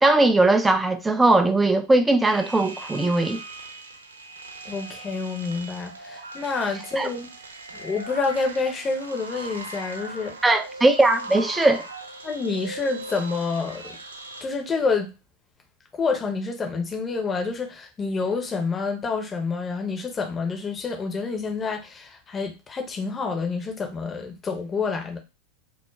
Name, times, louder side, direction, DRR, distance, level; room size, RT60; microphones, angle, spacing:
voice 1, 0.0-3.4 7.0-7.1 10.4-11.9, right 2 dB, 10° right, 0.4 m, -19 dB
sound 1, 2.2-14.4, right 2 dB, 80° right, 0.7 m, -39 dB
voice 2, 4.6-7.3 7.7-10.3 12.2-14.0 14.4-15.1 15.9-25.2, left 4 dB, 25° left, 0.7 m, -28 dB
2.3 x 2.1 x 3.2 m
figure-of-eight pair, 85°, 0 cm